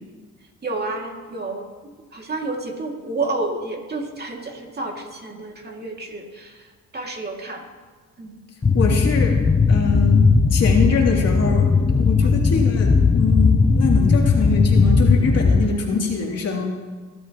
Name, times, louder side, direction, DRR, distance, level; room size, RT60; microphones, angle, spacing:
voice 1, 0.6-1.7 2.1-7.7 8.2-8.4 12.2-12.3 15.6-15.8, right 2 dB, 35° right, 1 dB, 2.4 m, -30 dB
sound 1, 8.6-15.7, left 4 dB, 20° left, 0.6 m, -17 dB
voice 2, 8.7-9.4 9.7-16.8, left 4 dB, 55° left, -1 dB, 2.9 m, -24 dB
23.0 x 11.5 x 3.0 m, 1.4 s
cardioid pair, 90°, 30 cm